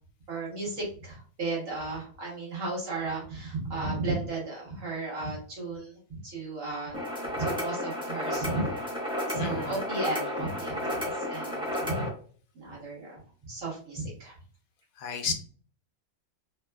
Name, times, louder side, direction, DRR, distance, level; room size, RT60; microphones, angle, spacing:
voice 1, 0.3-7.0 7.4-8.7 9.3-12.1 12.5-14.4 15.3-15.4, right 3 dB, 70° right, -4 dB, 1.8 m, -34 dB
sound 1, 6.9-12.1, left 1 dB, 5° right, 0.7 m, -32 dB
voice 2, 9.4-9.8 15.0-15.3, left 6 dB, 80° left, 6 dB, 1.0 m, -33 dB
4.0 x 2.2 x 2.2 m, 0.43 s
omnidirectional pair, 1.5 m